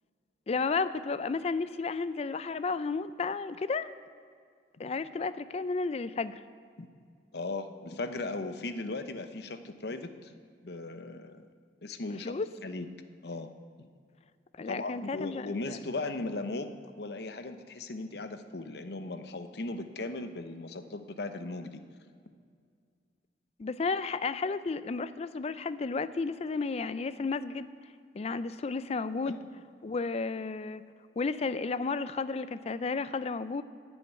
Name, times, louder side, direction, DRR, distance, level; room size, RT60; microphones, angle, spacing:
voice 1, 0.5-3.9 4.8-6.4 12.2-12.5 14.6-15.8 23.6-27.7 28.1-29.4 29.8-30.8 31.2-33.6, left 4 dB, 35° left, 14 dB, 0.4 m, -32 dB
voice 2, 7.3-10.3 10.6-11.5 11.8-12.3 12.6-12.9 13.2-13.5 13.8-13.9 14.7-16.7 17.0-21.8 29.3-29.5, left 2 dB, 60° left, 9 dB, 0.8 m, -37 dB
11.5 x 7.1 x 9.4 m, 2.1 s
head